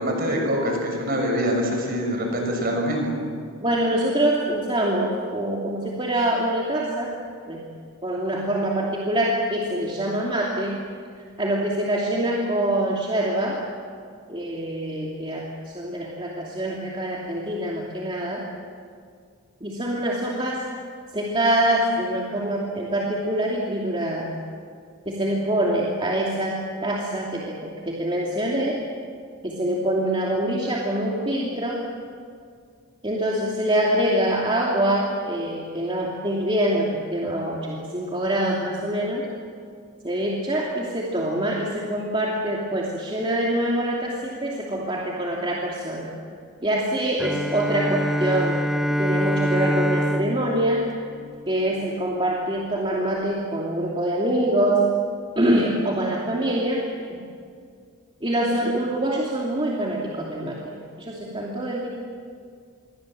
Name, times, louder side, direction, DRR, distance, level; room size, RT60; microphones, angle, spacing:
voice 1, 0.0-3.2, equal, 45° right, 2 dB, 6.5 m, -24 dB
voice 2, 3.6-7.1 7.5-7.6 8.0-10.8 11.1-13.6 14.3-18.4 19.6-20.6 21.1-24.3 25.1-28.8 29.4-31.8 33.0-39.3 40.0-46.1 46.6-48.6 49.0-50.8 51.5-54.8 55.4-57.2 58.2-61.9, right 1 dB, 25° right, -3 dB, 2.8 m, -25 dB
Bowed string instrument, 47.2-51.9, equal, ahead, 0.6 m, -26 dB
27.5 x 23.0 x 7.8 m, 2.2 s
head